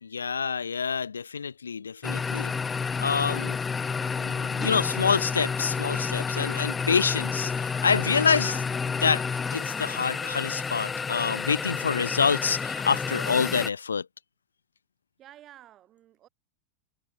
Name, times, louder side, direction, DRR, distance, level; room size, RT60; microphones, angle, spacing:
voice 1, 0.0-2.5 3.0-3.6 4.2-8.6 9.0-9.3 9.5-14.1, left 6 dB, 70° left, 0.7 m, -27 dB
sound 1, 2.0-13.7, left 5 dB, 15° left, 1.0 m, -30 dB
voice 2, 15.2-16.3, right 13 dB, 30° right, 5.7 m, -51 dB
figure-of-eight pair, 90°, 0 cm